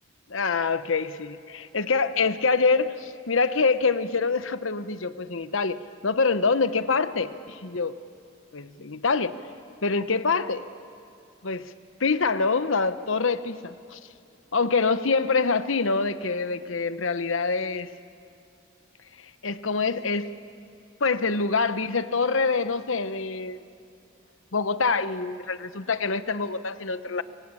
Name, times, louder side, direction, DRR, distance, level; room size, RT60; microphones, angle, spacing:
voice 1, 0.3-8.0 8.5-9.4 9.8-10.6 11.4-11.7 12.0-14.0 14.5-17.9 19.4-20.3 21.0-23.6 24.5-27.2, left 4 dB, 75° left, 12 dB, 1.0 m, -25 dB
26.0 x 24.0 x 8.5 m, 2.6 s
head